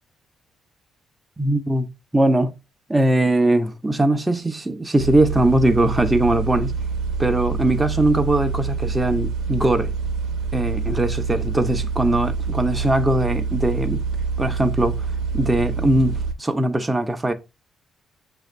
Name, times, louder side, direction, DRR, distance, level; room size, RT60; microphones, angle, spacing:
voice 1, 1.4-1.9 2.1-2.6 2.9-6.7 7.2-9.9 10.5-14.0 14.4-15.0 15.3-17.3, right 1 dB, 15° right, 0.6 m, -20 dB
sound 1, 5.0-16.3, right 5 dB, 80° right, 0.7 m, -26 dB
6.2 x 2.5 x 3.2 m
cardioid pair, 90°, 0 cm